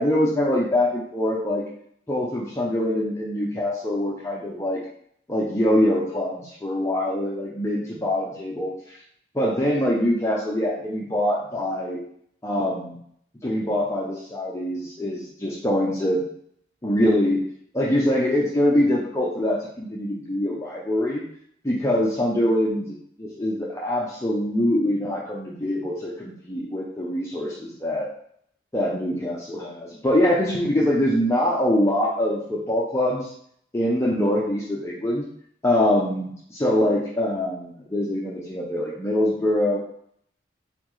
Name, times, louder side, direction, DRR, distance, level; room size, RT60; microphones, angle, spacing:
voice 1, 0.0-1.6 2.1-4.8 5.3-9.0 9.3-12.0 12.4-13.0 13.4-16.3 16.8-17.4 17.7-21.3 21.6-28.1 28.7-33.3 33.7-35.3 35.6-39.8, left 1 dB, 15° left, -5 dB, 0.5 m, -24 dB
4.2 x 3.9 x 3.1 m, 0.67 s
head